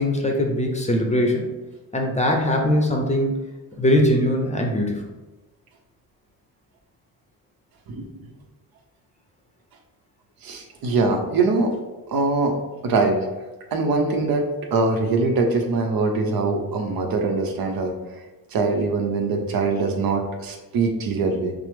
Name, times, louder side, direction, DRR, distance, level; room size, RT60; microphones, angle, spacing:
voice 1, 0.0-1.5 1.9-3.3 3.8-5.0, left 1 dB, 20° left, 2 dB, 0.6 m, -21 dB
voice 2, 7.9-8.3 10.4-11.8 12.1-13.3 13.7-18.0 18.5-21.5, right 3 dB, 70° right, 4 dB, 0.8 m, -23 dB
5.9 x 2.0 x 3.5 m, 1.1 s
cardioid pair, 100°, 37 cm